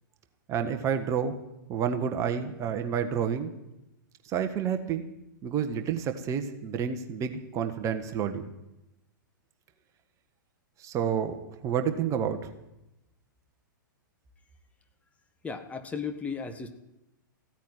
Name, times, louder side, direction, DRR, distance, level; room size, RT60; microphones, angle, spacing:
voice 1, 0.5-1.3 1.7-3.5 4.2-5.0 5.4-8.4 10.8-11.3 11.6-12.5, right 7 dB, 30° right, 7 dB, 1.4 m, -29 dB
voice 2, 15.4-16.7, left 5 dB, 10° left, 6 dB, 1.4 m, -35 dB
15.5 x 9.2 x 9.5 m, 0.90 s
figure-of-eight pair, 105°, 11 cm